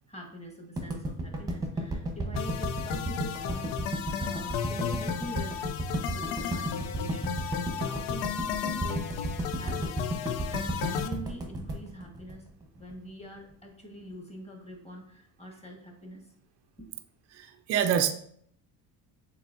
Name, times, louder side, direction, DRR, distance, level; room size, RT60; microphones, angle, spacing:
voice 1, 0.1-5.7 6.1-9.2 9.5-10.1 10.5-12.5 12.8-16.2 16.8-17.0, equal, 15° left, 1.3 m, -44 dB
sound 1, 0.8-12.9, right 1 dB, 10° right, 0.8 m, -33 dB
sound 2, 2.4-11.1, left 8 dB, 85° left, 0.5 m, -34 dB
voice 2, 17.3-18.1, right 8 dB, 35° right, 0.4 m, -26 dB
6.8 x 2.9 x 2.6 m
supercardioid pair, 85°, 46 cm